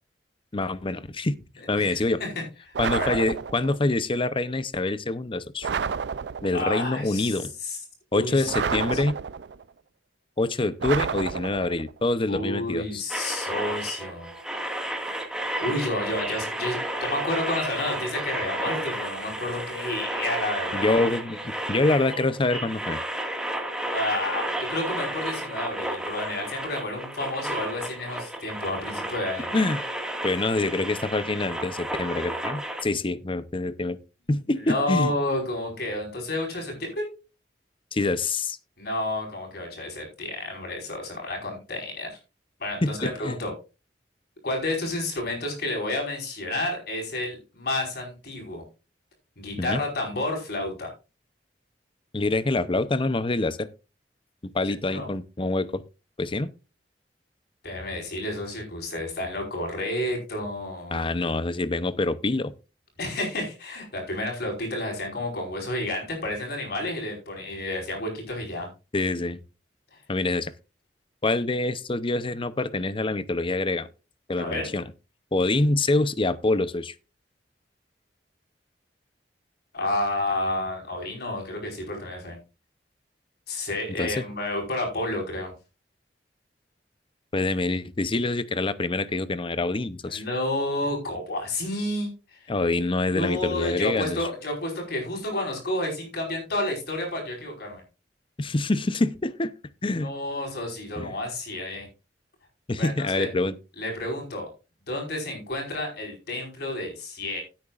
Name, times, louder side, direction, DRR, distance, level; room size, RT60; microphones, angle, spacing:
voice 1, 0.5-1.3 1.7-2.2 2.8-5.7 6.4-7.5 8.1-9.2 10.4-13.0 20.7-23.0 29.5-29.8 30.2-34.0 34.3-35.1 37.9-38.6 42.8-43.4 49.6-49.8 52.1-53.7 54.5-55.8 56.2-56.5 60.9-62.5 68.9-69.4 70.1-70.5 71.2-73.9 74.3-74.8 75.3-76.9 84.0-84.2 87.3-90.2 92.5-94.2 98.4-99.5 99.8-100.1 101.0-101.1 102.7-103.5, left 2 dB, 30° left, 0.7 m, -26 dB
voice 2, 1.8-3.3 6.5-7.8 8.1-9.1 12.3-14.3 15.6-21.0 23.8-29.5 34.6-37.1 38.8-42.2 42.6-43.5 44.4-48.6 49.4-50.9 54.9-55.1 57.6-61.0 63.0-68.7 74.4-74.7 79.7-82.4 83.5-85.5 90.1-92.5 93.1-97.8 99.8-101.9 102.8-103.3 103.8-104.5 104.9-107.4, left 1 dB, 65° left, 5.1 m, -30 dB
sound 1, 2.7-3.8 5.6-6.7 8.5-9.6 10.8-11.9, right 6 dB, 70° right, 0.5 m, -30 dB
sound 2, 13.1-32.8, right 1 dB, 5° right, 1.9 m, -32 dB
16.5 x 8.8 x 2.5 m
head